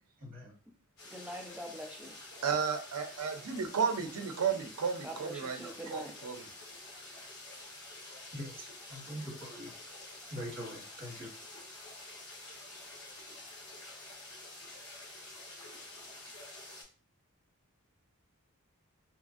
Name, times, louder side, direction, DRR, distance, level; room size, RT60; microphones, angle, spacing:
voice 1, 0.2-0.6 8.3-9.7 10.3-11.3, equal, 40° right, -1 dB, 1.2 m, -43 dB
sound 1, 1.0-16.8, left 2 dB, 70° left, 1.3 m, -49 dB
voice 2, 1.1-2.2 5.0-6.2, equal, 5° right, 1 dB, 0.4 m, -44 dB
voice 3, 2.4-6.4, right 6 dB, 90° right, 6 dB, 0.5 m, -33 dB
2.9 x 2.4 x 2.4 m, 0.36 s
head